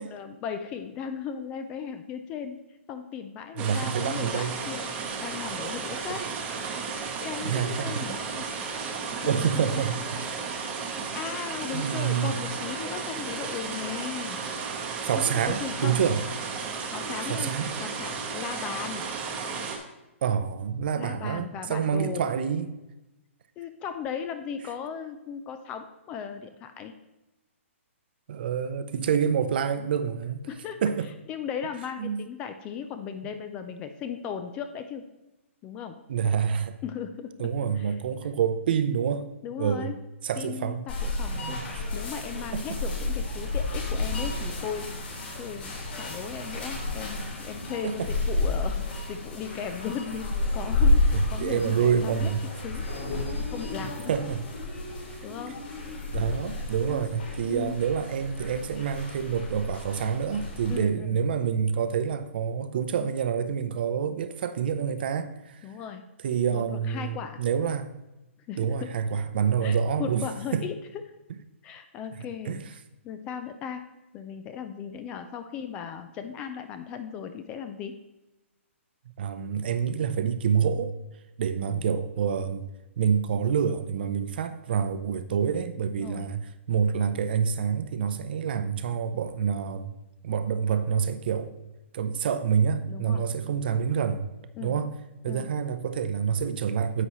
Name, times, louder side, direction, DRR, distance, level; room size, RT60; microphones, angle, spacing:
voice 1, 0.0-2.6 2.9-6.3 7.0-8.5 8.7-8.9 9.2-9.8 11.1-14.4 15.1-16.0 16.9-19.1 21.0-22.3 23.6-26.9 30.5-30.8 31.3-35.0 35.6-36.0 36.8-37.5 37.8-37.9 39.4-40.0 40.4-45.0 45.4-48.8 49.1-52.3 52.6-52.9 53.4-54.1 55.2-55.6 56.9-57.0 57.5-57.7 60.7-61.2 65.6-66.0 66.5-67.4 68.5-68.9 69.6-70.8 71.6-72.6 73.0-73.8 74.1-77.9 81.6-81.9 85.9-86.3 92.9-93.2 94.6-94.8 95.3-95.5, left 7 dB, 15° left, 0.3 m, -37 dB
sound 1, 3.6-19.8, right 5 dB, 15° right, 0.9 m, -34 dB
voice 2, 3.6-4.6 6.1-6.3 7.4-8.0 9.2-10.4 11.7-12.4 15.0-16.2 17.3-17.7 20.2-22.8 28.3-30.4 30.8-31.1 32.0-32.2 36.1-36.8 37.4-39.3 39.6-39.9 40.2-40.9 41.3-41.7 42.5-42.8 47.8-48.1 51.1-52.4 54.1-54.4 56.1-65.6 66.2-67.9 68.6-70.2 70.5-70.6 72.5-72.6 79.1-80.9 81.4-82.7 83.0-89.9 90.2-91.5 91.9-94.3 94.6-94.9 95.2-97.1, right 7 dB, 45° right, 0.6 m, -27 dB
sound 2, 40.9-60.8, left 2 dB, 55° left, 3.4 m, -31 dB
10.0 x 7.7 x 3.0 m
hypercardioid pair, 165°, 7 cm